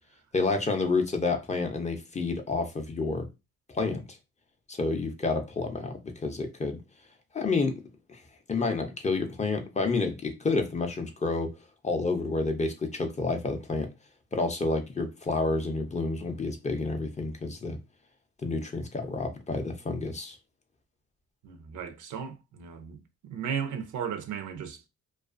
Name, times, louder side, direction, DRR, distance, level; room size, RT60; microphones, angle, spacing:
voice 1, 0.3-3.3 3.7-4.2 4.7-6.8 7.3-7.7 8.1-8.2 8.5-11.5 11.8-13.9 14.3-17.8 18.4-20.4, left 3 dB, 25° left, 0.5 m, -29 dB
voice 2, 21.4-24.9, right 7 dB, 75° right, 0.6 m, -36 dB
2.4 x 2.3 x 2.4 m
cardioid pair, 90°, 30 cm